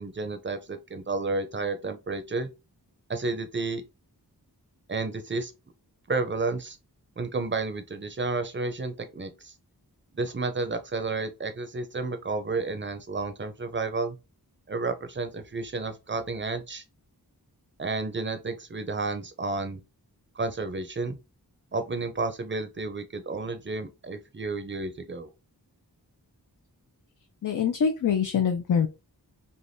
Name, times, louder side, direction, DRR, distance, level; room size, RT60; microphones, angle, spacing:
voice 1, 0.0-2.5 3.1-3.8 4.9-5.5 6.1-6.8 7.2-9.5 10.1-14.2 14.7-16.8 17.8-19.8 20.3-21.2 21.7-25.3, right 3 dB, 30° right, 0.5 m, -31 dB
voice 2, 27.4-28.9, left 7 dB, 55° left, 0.5 m, -24 dB
3.4 x 2.1 x 2.6 m
wide cardioid pair, 60°, 38 cm